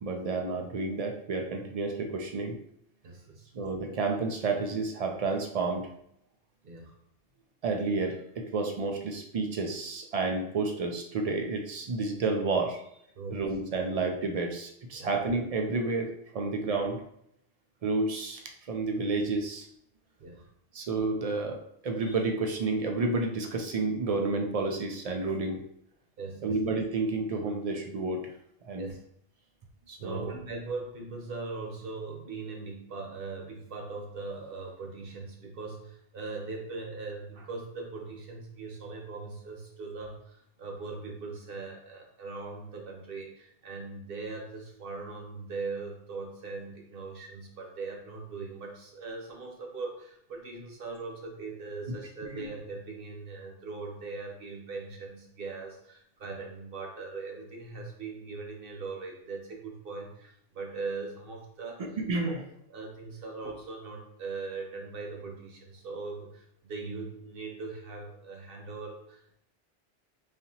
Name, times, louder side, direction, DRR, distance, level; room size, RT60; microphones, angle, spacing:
voice 1, 0.0-2.6 3.5-5.9 7.6-12.8 13.3-17.0 17.8-19.7 20.7-21.6 21.8-25.6 26.4-28.3 28.6-28.9 29.9-30.3 52.3-52.4 61.8-62.4, right 3 dB, 70° right, 3 dB, 0.3 m, -30 dB
voice 2, 3.0-3.5 6.6-7.0 13.1-13.4 14.9-15.1 20.2-20.5 26.2-26.5 28.8-29.0 30.0-61.8 62.2-62.4 62.7-69.4, right 4 dB, 55° right, 0 dB, 1.0 m, -40 dB
4.9 x 2.7 x 2.8 m, 0.73 s
omnidirectional pair, 1.2 m